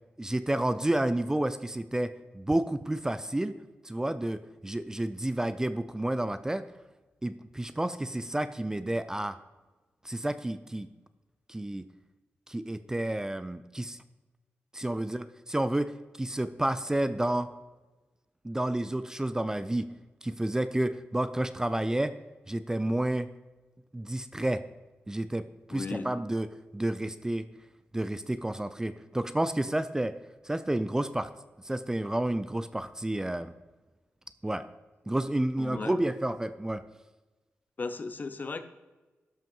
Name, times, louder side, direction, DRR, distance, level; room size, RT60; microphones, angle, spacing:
voice 1, 0.2-3.5 3.8-6.6 7.2-9.4 10.0-10.9 11.5-11.9 12.5-14.0 14.7-17.5 18.4-19.9 20.2-22.1 22.5-23.3 23.9-24.6 25.1-26.5 26.7-27.5 27.9-30.2 30.4-31.3 31.6-33.5 34.4-34.7 35.1-36.8, right 1 dB, 15° right, 13 dB, 0.4 m, -30 dB
voice 2, 25.7-26.1 35.6-35.9 37.8-38.6, left 4 dB, 40° left, 10 dB, 0.8 m, -35 dB
13.0 x 5.6 x 5.4 m, 1.2 s
wide cardioid pair, 95°, 4 cm